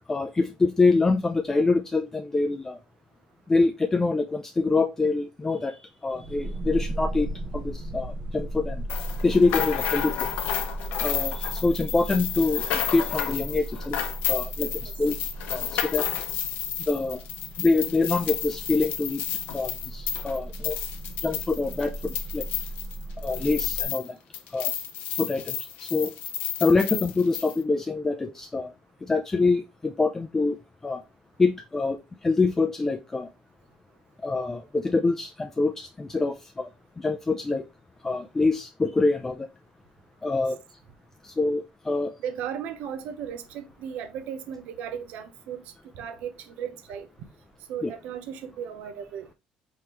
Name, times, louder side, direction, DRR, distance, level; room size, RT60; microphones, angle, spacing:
voice 1, 0.1-2.8 3.5-8.8 9.2-10.3 11.0-14.0 14.3-15.2 15.5-16.0 16.9-17.2 17.6-19.2 19.5-20.8 21.2-22.5 23.2-24.2 24.5-24.7 25.2-26.1 26.6-28.7 29.0-30.6 30.8-31.0 31.4-33.3 34.2-36.7 37.0-37.7 38.0-39.5 40.2-40.6 41.2-42.1 47.8-47.9, left 3 dB, 15° left, 0.4 m, -25 dB
sound 1, 6.1-23.8, right 1 dB, 40° right, 0.9 m, -36 dB
sound 2, 8.9-24.1 24.3-27.6, left 9 dB, 80° left, 0.7 m, -31 dB
voice 2, 42.2-47.1 47.7-49.3, right 8 dB, 75° right, 0.7 m, -36 dB
4.5 x 3.5 x 3.0 m
cardioid pair, 120°, 3 cm